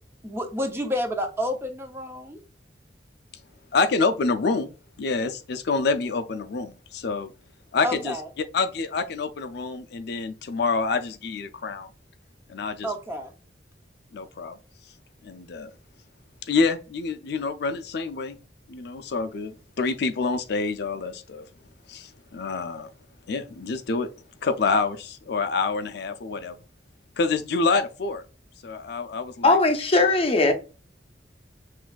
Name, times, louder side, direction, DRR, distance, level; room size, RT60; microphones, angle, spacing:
voice 1, 0.2-2.4 7.8-8.3 12.8-13.3, left 1 dB, 15° right, 0.7 m, -29 dB
voice 2, 3.7-4.7 5.0-7.3 7.7-8.2 8.5-11.9 12.5-12.9 14.1-14.6 15.2-15.7 16.5-18.4 18.7-21.4 21.9-22.9 23.3-24.1 24.4-26.6 27.2-28.2 28.6-29.6, left 4 dB, 65° left, 0.5 m, -27 dB
voice 3, 29.4-30.5, left 2 dB, 35° left, 0.7 m, -19 dB
6.1 x 2.6 x 2.3 m
head